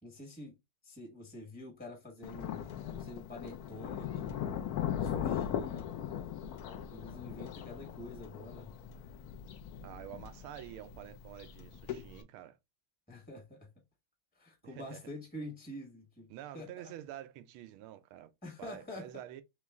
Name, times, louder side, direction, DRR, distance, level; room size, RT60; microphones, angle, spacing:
voice 1, 0.0-0.5 0.8-4.5 4.9-5.9 6.9-8.7 13.1-13.7 14.3-16.3 16.5-16.9 18.4-19.1, left 1 dB, 5° left, 0.7 m, -47 dB
Thunder, 2.2-12.2, left 9 dB, 80° left, 0.8 m, -39 dB
voice 2, 9.8-12.6 14.6-15.0 16.3-18.3 18.6-19.4, right 12 dB, 90° right, 1.5 m, -48 dB
3.7 x 3.1 x 3.5 m
omnidirectional pair, 2.3 m